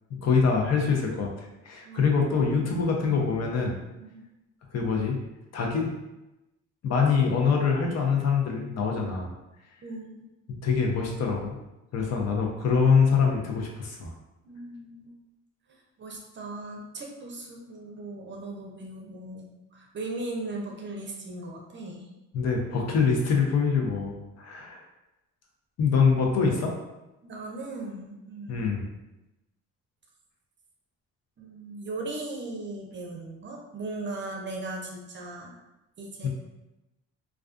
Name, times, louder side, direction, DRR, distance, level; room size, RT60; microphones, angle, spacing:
voice 1, 0.2-3.8 4.7-5.2 5.5-5.9 6.8-9.3 10.6-11.5 11.9-14.1 22.3-24.8 25.8-26.7 28.5-28.9 36.2-36.3, left 5 dB, 60° left, 0 dB, 0.6 m, -24 dB
voice 2, 1.8-2.2 4.0-4.2 9.8-10.2 14.4-15.2 15.7-22.1 27.2-28.8 31.4-35.6 36.0-36.3, right 2 dB, 40° right, 0 dB, 0.5 m, -38 dB
2.3 x 2.3 x 2.3 m, 0.98 s
cardioid pair, 90°, 30 cm